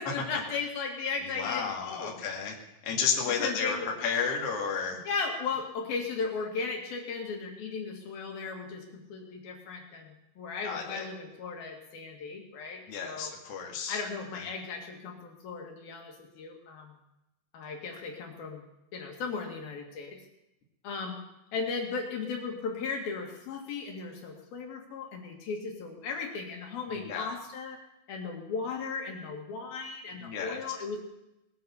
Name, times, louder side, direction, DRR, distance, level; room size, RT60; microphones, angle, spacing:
voice 1, 0.0-2.2 3.4-3.9 5.1-13.3 13.9-17.0 17.5-18.6 18.9-20.2 20.8-21.2 21.5-27.8 28.1-31.0, left 4 dB, 75° left, 2 dB, 4.0 m, -36 dB
voice 2, 1.2-2.6 2.8-5.0 10.6-11.1 12.9-14.0 26.9-27.3 30.2-30.6, left 6 dB, 45° left, 0 dB, 2.9 m, -32 dB
20.0 x 9.4 x 7.1 m, 0.89 s
omnidirectional pair, 4.3 m